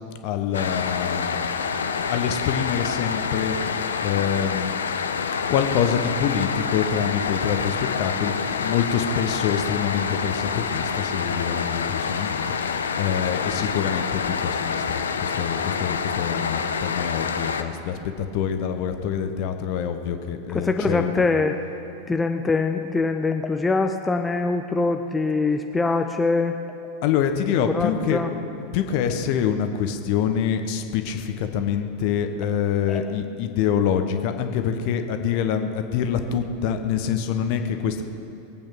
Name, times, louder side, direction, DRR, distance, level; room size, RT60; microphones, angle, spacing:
voice 1, 0.2-1.4 2.1-4.7 5.5-21.3 27.0-28.2 28.6-38.0, left 8 dB, 45° left, 7 dB, 1.1 m, -26 dB
sound 1, 0.5-17.6, left 6 dB, 70° left, 0.7 m, -27 dB
voice 2, 20.5-21.6 22.1-26.5 27.7-28.3 32.9-33.0, left 3 dB, 10° left, 5 dB, 0.6 m, -23 dB
22.0 x 8.7 x 6.0 m, 2.8 s
figure-of-eight pair, 90°, 0 cm